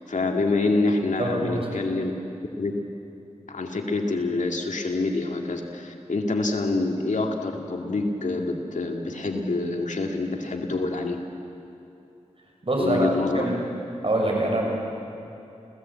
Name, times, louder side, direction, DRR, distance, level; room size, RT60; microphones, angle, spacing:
voice 1, 0.1-2.1 2.6-2.8 3.5-11.2 12.8-13.5, left 3 dB, 80° left, 2 dB, 2.3 m, -26 dB
voice 2, 1.2-1.7 12.6-13.6 14.0-14.6, right 1 dB, 50° right, 0 dB, 6.6 m, -24 dB
29.5 x 16.5 x 8.7 m, 2.8 s
wide cardioid pair, 55°, 13 cm